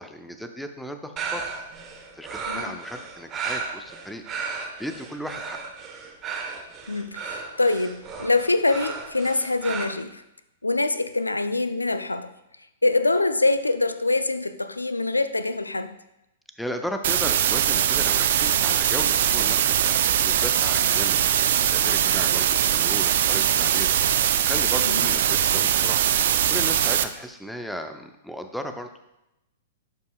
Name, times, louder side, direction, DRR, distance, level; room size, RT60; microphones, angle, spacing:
voice 1, 0.0-1.5 2.1-4.2 4.8-5.6 16.6-23.9 24.4-26.0 26.5-28.9, equal, ahead, 6 dB, 0.6 m, -35 dB
sound 1, 1.2-9.8, right 5 dB, 25° right, 1.1 m, -34 dB
voice 2, 2.5-2.8 6.9-10.2 10.6-12.3 12.8-16.0 24.9-25.1, left 2 dB, 85° left, 12 dB, 0.4 m, -24 dB
sound 2, 17.0-27.0, right 10 dB, 55° right, 0.4 m, -21 dB
11.5 x 5.5 x 2.4 m, 0.89 s
figure-of-eight pair, 105°, 0 cm